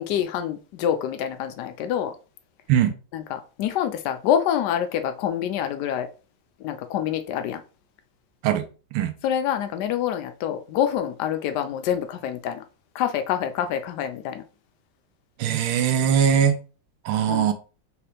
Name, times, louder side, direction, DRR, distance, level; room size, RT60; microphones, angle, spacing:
voice 1, 0.0-2.1 3.1-6.1 6.6-7.6 9.2-12.6 12.9-14.4 17.2-17.5, left 9 dB, 80° left, 0.9 m, -26 dB
voice 2, 15.4-16.6 17.0-17.5, right 8 dB, 90° right, 1.5 m, -20 dB
4.8 x 3.0 x 3.2 m
omnidirectional pair, 2.3 m